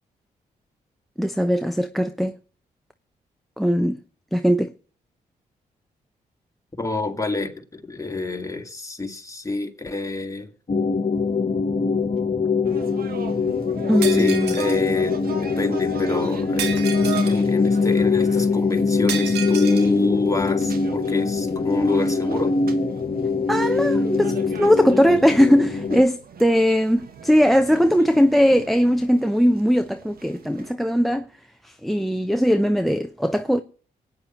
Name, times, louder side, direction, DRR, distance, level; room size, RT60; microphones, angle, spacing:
voice 1, 1.2-2.3 3.6-4.0 4.3-4.7 13.9-14.6 23.5-24.3 24.6-31.3 31.6-33.6, equal, ahead, 0.8 m, -19 dB
voice 2, 6.8-10.5 14.1-17.0 17.2-22.6, left 2 dB, 20° left, 2.2 m, -27 dB
sound 1, 10.7-26.0, left 4 dB, 45° left, 1.6 m, -22 dB
sound 2, 12.6-30.7, right 6 dB, 65° right, 1.7 m, -40 dB
Shatter, 14.0-14.8 16.6-17.4 19.1-19.9, right 8 dB, 85° right, 1.5 m, -31 dB
24.5 x 9.2 x 3.1 m
supercardioid pair, 55°, 17 cm